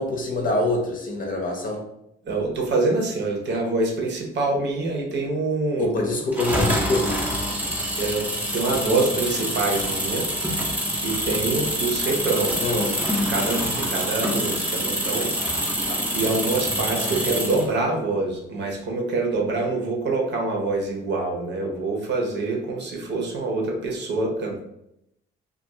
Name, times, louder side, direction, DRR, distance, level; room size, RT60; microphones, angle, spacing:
voice 1, 0.0-1.8 5.8-7.2 12.6-12.9, left 2 dB, 45° left, 1 dB, 0.6 m, -25 dB
voice 2, 2.2-5.9 8.0-8.2 8.5-10.3 11.0-12.6 13.1-15.3 15.8-24.6, right 3 dB, 60° right, 0 dB, 0.8 m, -25 dB
sound 1, 6.3-17.7, equal, 10° right, 0.6 m, -26 dB
2.4 x 2.3 x 3.0 m, 0.80 s
cardioid pair, 90°, 20 cm